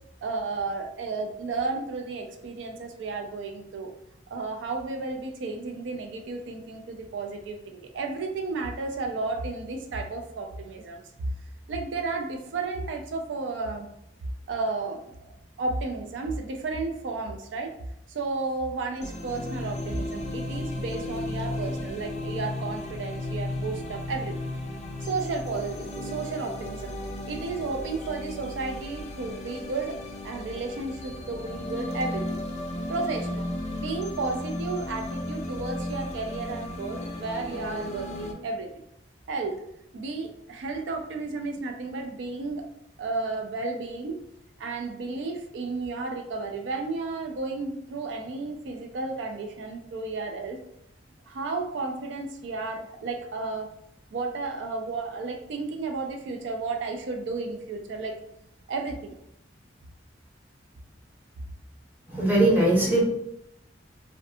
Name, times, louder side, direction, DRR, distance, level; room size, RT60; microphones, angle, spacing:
voice 1, 0.2-3.9 4.3-11.0 11.7-13.9 14.5-15.3 15.6-17.7 18.1-24.4 25.0-26.9 27.3-30.0 30.2-32.4 32.9-33.5 33.8-38.8 39.3-39.6 39.9-42.6 43.0-44.2 44.6-50.6 51.3-53.7 54.1-58.2 58.7-59.1, right 3 dB, 85° right, 4 dB, 0.4 m, -33 dB
sound 1, 19.0-38.3, left 1 dB, 40° left, 0.4 m, -34 dB
voice 2, 62.1-63.0, right 1 dB, 10° right, -5 dB, 0.7 m, -20 dB
2.6 x 2.4 x 2.3 m, 0.79 s
head